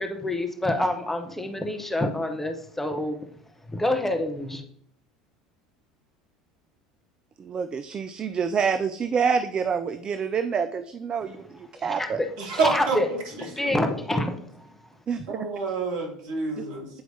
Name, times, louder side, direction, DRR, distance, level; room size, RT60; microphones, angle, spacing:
voice 1, 0.0-3.3 3.7-4.6 11.7-13.1 13.4-14.4, left 1 dB, 10° left, 5 dB, 0.7 m, -27 dB
voice 2, 7.4-12.2 15.1-15.4, right 6 dB, 25° right, 10 dB, 0.3 m, -27 dB
voice 3, 12.4-13.2 13.6-13.7 15.3-16.9, right 4 dB, 55° right, 0 dB, 1.4 m, -28 dB
8.5 x 4.4 x 2.7 m, 0.65 s
figure-of-eight pair, 70°, 3 cm